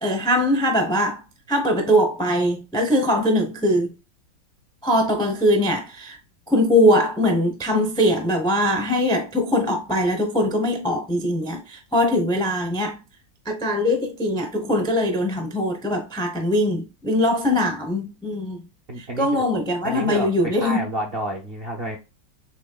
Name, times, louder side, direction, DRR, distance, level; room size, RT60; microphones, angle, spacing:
voice 1, 0.0-1.2 1.5-3.9 4.8-6.2 6.5-13.0 13.5-18.6 19.0-20.9, equal, 5° left, 0.3 m, -21 dB
voice 2, 18.9-19.5 19.8-22.0, right 1 dB, 55° right, 0.6 m, -29 dB
6.3 x 3.5 x 2.2 m
omnidirectional pair, 2.0 m